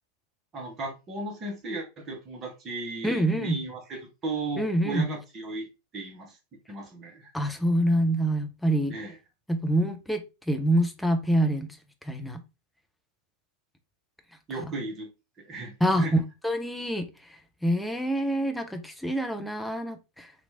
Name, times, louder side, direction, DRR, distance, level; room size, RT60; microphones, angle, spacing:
voice 1, 0.5-5.7 5.9-6.4 6.7-7.3 8.9-9.1 14.5-15.1 15.5-16.2, right 2 dB, 25° right, 0.9 m, -35 dB
voice 2, 3.0-3.6 4.6-5.1 7.3-9.0 9.5-11.8 12.0-12.4 15.8-20.3, right 1 dB, 5° left, 0.5 m, -26 dB
2.9 x 2.4 x 2.7 m
figure-of-eight pair, 90°, 0 cm